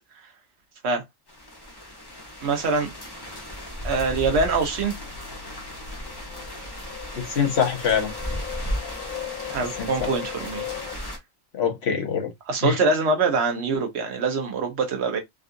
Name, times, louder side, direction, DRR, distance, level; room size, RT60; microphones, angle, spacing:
sound 1, 1.3-11.2, equal, 25° left, 0.6 m, -35 dB
voice 1, 2.4-2.9 3.8-5.0 9.5-10.9 12.5-15.2, right 4 dB, 55° right, 1.1 m, -24 dB
sound 2, 5.0-10.9, left 10 dB, 80° left, 1.1 m, -38 dB
voice 2, 7.2-8.1 9.8-10.1 11.5-12.3 12.6-12.8, left 7 dB, 55° left, 1.2 m, -24 dB
3.7 x 2.4 x 2.4 m
omnidirectional pair, 1.4 m